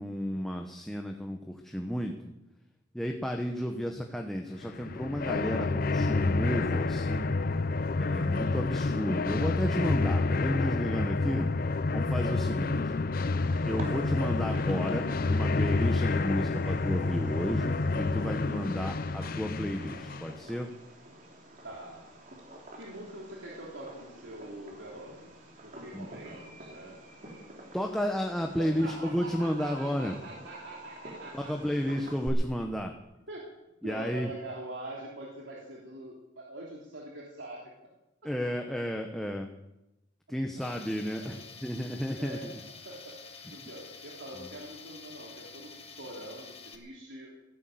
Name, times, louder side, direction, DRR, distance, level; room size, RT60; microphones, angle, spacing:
voice 1, 0.0-2.1 2.9-7.3 7.9-11.5 11.9-12.9 13.6-20.7 25.9-26.1 27.7-30.2 31.3-32.9 33.8-34.3 38.2-39.5 40.3-42.5 43.4-43.5, equal, ahead, 2 dB, 0.9 m, -32 dB
sound 1, 4.6-20.4, left 3 dB, 50° left, 0.5 m, -29 dB
Fireworks, 13.3-32.3, right 1 dB, 45° right, 3.5 m, -49 dB
voice 2, 21.6-22.0 22.7-27.0 28.6-31.7 33.3-33.4 33.8-37.7 41.2-41.4 42.1-42.5 42.8-47.4, right 1 dB, 90° right, -3 dB, 3.2 m, -44 dB
Tools, 40.6-46.7, left 5 dB, 30° left, 1.7 m, -49 dB
16.5 x 11.0 x 7.8 m, 0.94 s
head